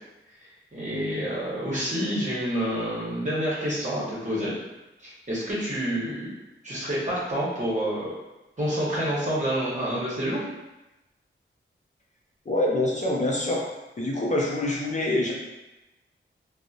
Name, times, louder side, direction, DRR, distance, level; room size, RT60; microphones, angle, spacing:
voice 1, 0.4-4.5 5.0-6.3 6.6-8.1 8.6-10.4, equal, 35° right, -8 dB, 0.9 m, -28 dB
voice 2, 12.5-13.6 14.0-15.3, left 1 dB, 35° left, -3 dB, 0.5 m, -25 dB
2.7 x 2.0 x 2.4 m, 1.0 s
cardioid pair, 55°, 21 cm